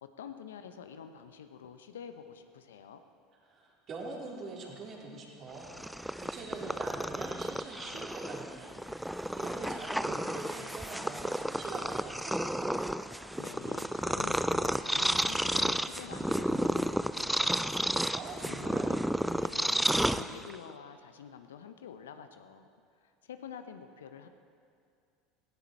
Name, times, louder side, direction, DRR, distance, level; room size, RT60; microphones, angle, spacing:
voice 1, 0.0-3.0 13.4-17.9 18.4-19.8 20.1-22.7 23.0-24.3, left 7 dB, 75° left, 8 dB, 0.9 m, -47 dB
voice 2, 3.5-8.7 9.0-12.8 18.1-18.9, right 3 dB, 40° right, -2 dB, 3.9 m, -44 dB
Purr, 5.6-20.7, right 1 dB, 5° right, 0.4 m, -32 dB
sound 1, 9.2-10.7 11.1-11.4 11.9-17.1 17.5-17.6, left 5 dB, 60° left, 2.9 m, -60 dB
17.0 x 17.0 x 4.5 m, 2.4 s
hypercardioid pair, 75°, 0 cm